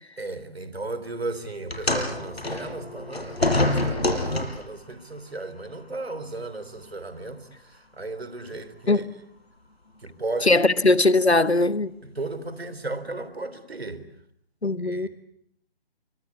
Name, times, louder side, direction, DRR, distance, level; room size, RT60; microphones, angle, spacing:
voice 1, 0.2-9.1 10.0-10.5 12.0-14.0 14.7-15.1, right 2 dB, 75° right, 3.8 m, -35 dB
sound 1, 1.7-4.8 5.7-5.9 6.8-6.9, left 2 dB, 75° left, 5.1 m, -26 dB
voice 2, 10.5-11.9 14.6-15.1, left 2 dB, 90° left, 1.3 m, -20 dB
28.0 x 23.5 x 8.3 m
figure-of-eight pair, 145°, 31 cm